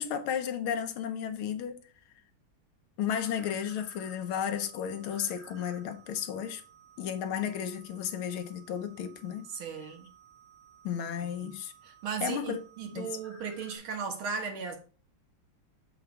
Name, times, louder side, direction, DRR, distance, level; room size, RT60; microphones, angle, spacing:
voice 1, 0.0-1.8 3.0-6.6 7.0-9.5 10.8-11.7 12.2-12.6 12.9-13.1, left 8 dB, 80° left, 1.6 m, -33 dB
sound 1, 3.2-13.8, right 4 dB, 50° right, 2.3 m, -56 dB
voice 2, 9.5-10.1 11.4-11.6 11.8-14.8, right 6 dB, 75° right, 2.0 m, -36 dB
7.0 x 4.9 x 3.4 m
omnidirectional pair, 2.3 m